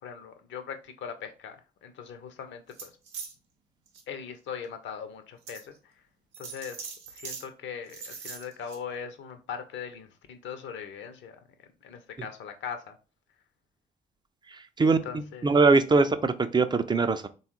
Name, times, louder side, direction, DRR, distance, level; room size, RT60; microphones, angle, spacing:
voice 1, 0.0-2.9 4.1-6.0 6.4-13.0 14.8-15.6, left 7 dB, 60° left, 8 dB, 0.6 m, -40 dB
sound 1, 2.7-3.3 3.9-4.0 4.6-4.7 5.5-5.6 6.3-7.4 7.9-8.8, right 6 dB, 85° right, 0.7 m, -41 dB
voice 2, 14.5-15.0 15.4-17.3, right 3 dB, 20° right, 10 dB, 0.4 m, -22 dB
3.4 x 2.3 x 3.0 m, 0.33 s
hypercardioid pair, 50°, 21 cm